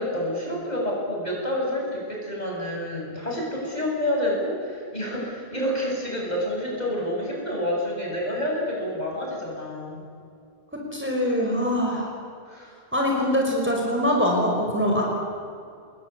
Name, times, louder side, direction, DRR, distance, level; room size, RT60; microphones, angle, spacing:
voice 1, 0.0-10.0 12.5-12.7, left 1 dB, 40° left, -2 dB, 7.9 m, -28 dB
voice 2, 10.9-12.2 12.9-15.0, equal, 10° right, -2 dB, 5.6 m, -23 dB
28.5 x 21.5 x 8.4 m, 2.4 s
omnidirectional pair, 1.1 m